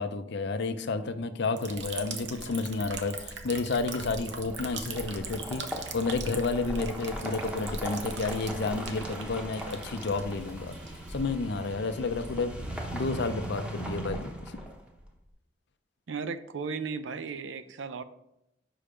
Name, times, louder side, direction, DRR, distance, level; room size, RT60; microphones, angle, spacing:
voice 1, 0.0-10.8 11.1-14.6, left 3 dB, 65° left, 10 dB, 0.6 m, -31 dB
Liquid, 1.6-14.0, right 3 dB, 70° right, 0.9 m, -41 dB
sound 1, 4.2-15.0, right 1 dB, 5° right, 0.9 m, -39 dB
voice 2, 16.1-18.0, right 5 dB, 85° right, 12 dB, 0.5 m, -35 dB
5.6 x 5.1 x 5.0 m, 0.83 s
head